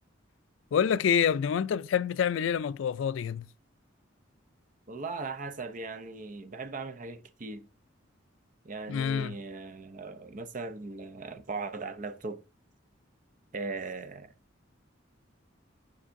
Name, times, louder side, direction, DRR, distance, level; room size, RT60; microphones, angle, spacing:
voice 1, 0.7-3.5 8.9-9.3, left 7 dB, 70° left, 0.3 m, -27 dB
voice 2, 4.9-7.6 8.6-12.4 13.5-14.3, right 3 dB, 40° right, 0.6 m, -38 dB
7.1 x 5.3 x 2.6 m
head